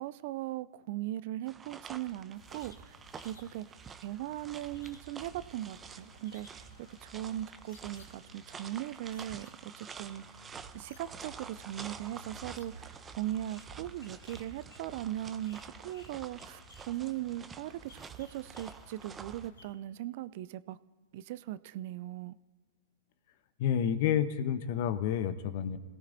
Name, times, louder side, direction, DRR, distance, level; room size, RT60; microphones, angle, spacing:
voice 1, 0.0-2.9 3.2-10.2 10.7-16.6 16.9-20.8 21.1-22.4, right 14 dB, 50° right, 18 dB, 0.4 m, -39 dB
sound 1, 1.5-19.5, right 6 dB, 20° right, 0.7 m, -49 dB
sound 2, 2.3-19.7, left 1 dB, 85° left, 2.6 m, -56 dB
voice 2, 23.6-25.8, left 9 dB, 50° left, 12 dB, 1.0 m, -29 dB
26.5 x 17.5 x 2.7 m, 1.5 s
hypercardioid pair, 110°, 0 cm